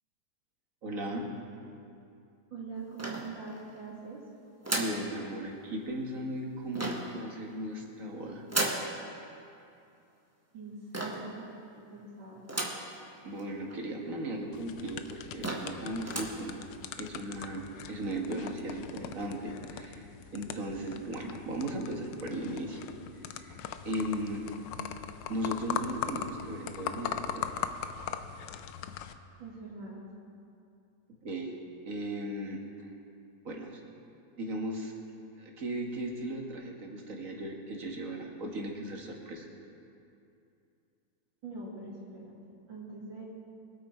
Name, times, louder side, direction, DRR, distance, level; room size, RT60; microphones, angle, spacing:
voice 1, 0.8-1.3 4.7-8.5 13.2-16.7 17.0-22.8 23.3-23.6 23.8-24.6 25.3-27.5 31.2-31.5 31.9-32.9 33.4-33.8 34.4-34.9 35.4-39.5, right 1 dB, 45° right, 0 dB, 1.9 m, -37 dB
voice 2, 2.5-4.2 10.5-12.5 29.4-30.0 41.4-42.3 42.7-43.2, right 3 dB, 70° right, -8 dB, 3.0 m, -43 dB
sound 1, 3.0-3.7 4.6-5.1 6.7-7.2 8.5-8.9 10.9-11.3 12.5-12.9 13.4-13.5 13.7-13.8 14.5-14.6 15.1-15.2 15.4-15.8 16.0-16.4, right 1 dB, 10° right, 1.1 m, -33 dB
sound 2, 14.5-29.1, left 9 dB, 75° left, 1.2 m, -40 dB
23.0 x 8.4 x 4.5 m, 2.6 s
omnidirectional pair, 2.1 m